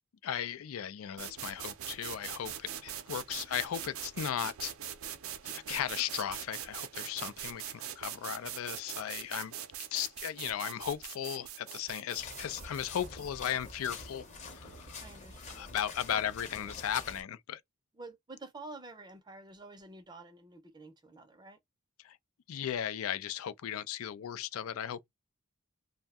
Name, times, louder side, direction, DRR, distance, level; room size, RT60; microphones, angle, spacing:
voice 1, 0.2-4.7 5.4-9.5 9.9-15.0 15.5-17.6 22.0-22.2 22.5-25.1, left 9 dB, 85° left, 0.4 m, -36 dB
sound 1, 1.2-14.9, right 10 dB, 90° right, 0.5 m, -43 dB
sound 2, 12.2-17.2, left 4 dB, 35° left, 0.7 m, -46 dB
voice 2, 15.0-15.7 16.1-16.3 17.9-21.6, right 2 dB, 20° right, 0.5 m, -49 dB
2.6 x 2.1 x 3.4 m
head